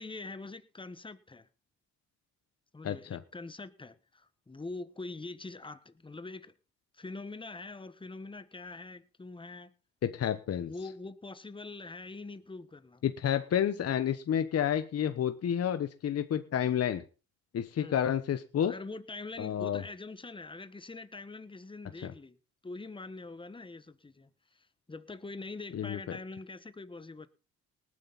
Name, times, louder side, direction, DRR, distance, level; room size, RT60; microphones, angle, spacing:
voice 1, 0.0-1.5 2.7-6.5 6.9-9.7 10.5-13.0 17.8-18.0 18.6-22.4 22.6-27.3, left 3 dB, 15° left, 1.3 m, -44 dB
voice 2, 2.8-3.2 10.0-10.7 13.0-17.0 17.5-18.7 19.4-19.8 22.0-22.1 25.7-26.2, left 9 dB, 55° left, 1.1 m, -30 dB
19.0 x 9.7 x 4.1 m
cardioid pair, 90°, 30 cm